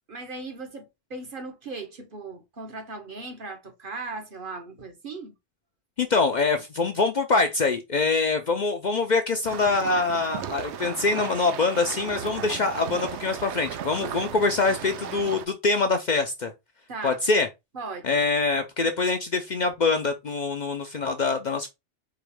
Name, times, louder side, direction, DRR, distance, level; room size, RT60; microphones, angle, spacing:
voice 1, 0.1-5.3 16.9-17.2 17.7-18.2, right 3 dB, 50° right, 1.1 m, -38 dB
voice 2, 6.0-16.5 17.0-17.5 18.0-21.7, left 3 dB, 50° left, 0.6 m, -24 dB
sound 1, 9.4-15.5, right 9 dB, 80° right, 0.9 m, -36 dB
4.7 x 3.0 x 3.4 m
omnidirectional pair, 1.1 m